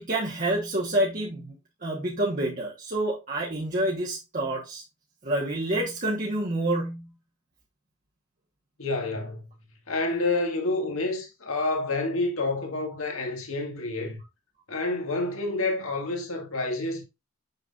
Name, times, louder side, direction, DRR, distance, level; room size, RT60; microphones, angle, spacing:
voice 1, 0.0-1.5 1.8-4.8 5.2-7.1, right 1 dB, 35° right, 1.2 m, -28 dB
voice 2, 8.8-9.4 9.9-14.2 14.7-17.0, left 2 dB, 70° left, 1.9 m, -28 dB
6.6 x 5.9 x 2.4 m
head